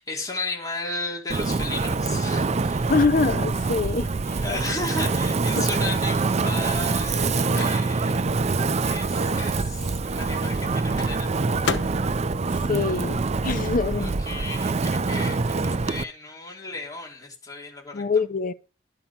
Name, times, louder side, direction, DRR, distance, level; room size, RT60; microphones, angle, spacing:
voice 1, 0.0-2.9 4.4-8.3 8.8-11.3 14.0-18.2, left 2 dB, 20° left, 3.5 m, -34 dB
Wind, 1.3-16.0, right 3 dB, 40° right, 0.5 m, -25 dB
voice 2, 2.9-4.1 12.7-14.1 17.9-18.5, left 4 dB, 50° left, 0.6 m, -24 dB
Microwave oven, 7.0-13.8 14.1-16.0, left 4 dB, 90° left, 1.0 m, -38 dB
12.0 x 5.5 x 7.2 m
head